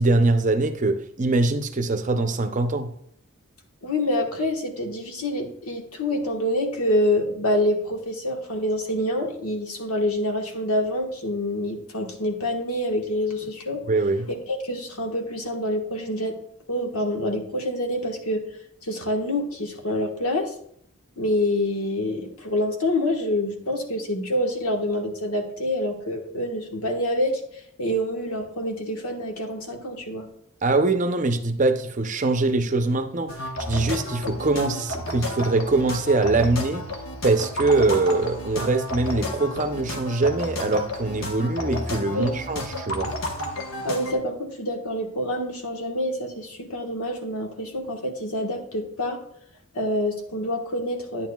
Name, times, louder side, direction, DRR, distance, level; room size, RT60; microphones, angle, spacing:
voice 1, 0.0-2.9 13.9-14.3 30.6-36.9 37.2-43.1, right 3 dB, 35° right, 0.6 m, -23 dB
voice 2, 3.8-13.8 14.3-16.4 16.7-18.4 18.8-20.5 21.2-30.3 42.1-42.3 43.8-49.2 49.7-51.3, left 1 dB, 90° left, 1.4 m, -26 dB
sound 1, 33.3-44.1, left 1 dB, 70° left, 1.1 m, -32 dB
10.0 x 9.2 x 2.3 m
head